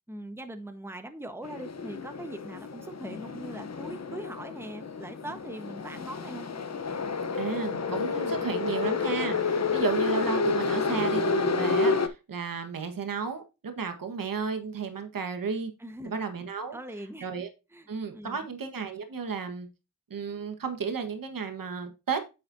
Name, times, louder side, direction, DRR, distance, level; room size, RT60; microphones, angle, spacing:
voice 1, 0.1-6.5 15.8-16.1 16.7-17.3 17.7-17.9 18.1-18.5, right 1 dB, 5° right, 1.3 m, -41 dB
sound 1, 1.4-12.1, left 4 dB, 50° left, 1.1 m, -30 dB
voice 2, 7.3-15.7 16.0-16.8 17.2-17.5 17.9-19.7 20.1-22.2, right 5 dB, 80° right, 1.6 m, -33 dB
9.4 x 6.6 x 2.8 m
cardioid pair, 50°, 33 cm